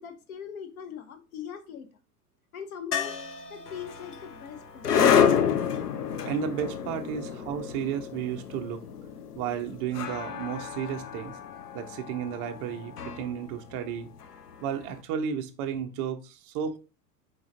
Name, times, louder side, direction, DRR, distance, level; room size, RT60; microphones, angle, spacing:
voice 1, 0.0-1.9 2.5-3.1 3.5-4.9, left 8 dB, 65° left, 0.9 m, -40 dB
sound 1, 2.9-6.8 9.5-9.6 9.8-9.9, left 7 dB, 30° left, 0.6 m, -39 dB
sound 2, 3.7-14.8, left 7 dB, 80° left, 0.6 m, -29 dB
voice 2, 6.2-8.8 9.4-11.3 11.7-14.1 14.6-16.8, right 8 dB, 25° right, 0.3 m, -33 dB
4.7 x 3.9 x 2.5 m
figure-of-eight pair, 85°, 46 cm